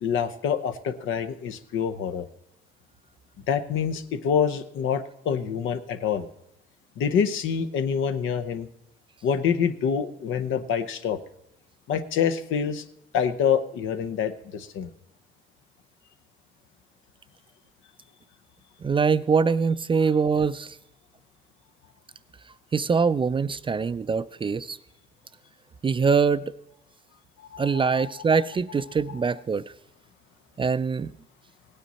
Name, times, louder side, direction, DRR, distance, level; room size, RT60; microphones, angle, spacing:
voice 1, 0.0-2.3 3.5-6.3 7.0-8.7 9.2-11.2 11.9-12.8 13.1-14.9 27.5-28.1, left 7 dB, 85° left, 10 dB, 0.8 m, -26 dB
voice 2, 18.8-20.8 22.7-24.8 25.8-26.5 27.6-29.6 30.6-31.1, right 5 dB, 25° right, 15 dB, 0.3 m, -23 dB
17.0 x 9.1 x 4.1 m, 0.83 s
cardioid pair, 90°, 20 cm